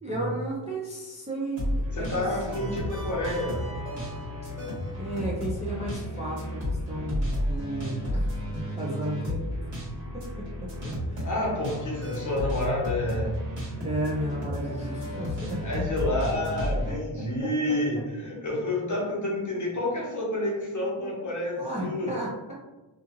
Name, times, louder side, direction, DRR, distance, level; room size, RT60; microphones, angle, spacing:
voice 1, 0.0-2.2 2.5-2.9 4.9-9.4 10.1-11.3 11.9-12.0 13.8-15.9 16.9-17.0 17.4-17.5 21.6-22.5, right 1 dB, 15° right, -5 dB, 0.4 m, -34 dB
sound 1, 1.6-16.9, left 1 dB, 70° right, 1.5 m, -32 dB
voice 2, 1.9-3.8 11.2-13.4 15.6-22.1, left 1 dB, 40° left, -3 dB, 0.8 m, -29 dB
2.8 x 2.4 x 2.8 m, 1.1 s
wide cardioid pair, 140°, 48 cm